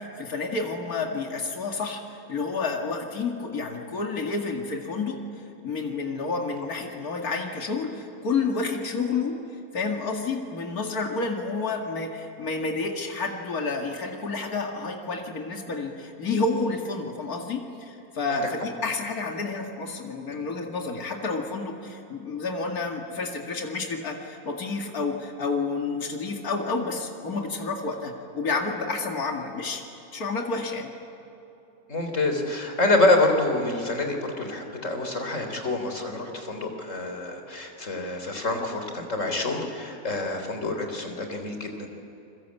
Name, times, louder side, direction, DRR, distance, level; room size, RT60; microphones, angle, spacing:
voice 1, 0.0-5.2 5.6-9.4 9.7-29.8 30.1-30.9, left 4 dB, 75° left, 1 dB, 2.6 m, -30 dB
voice 2, 31.9-41.9, left 2 dB, 55° left, 4 dB, 4.0 m, -26 dB
29.0 x 22.0 x 8.4 m, 2.9 s
omnidirectional pair, 1.6 m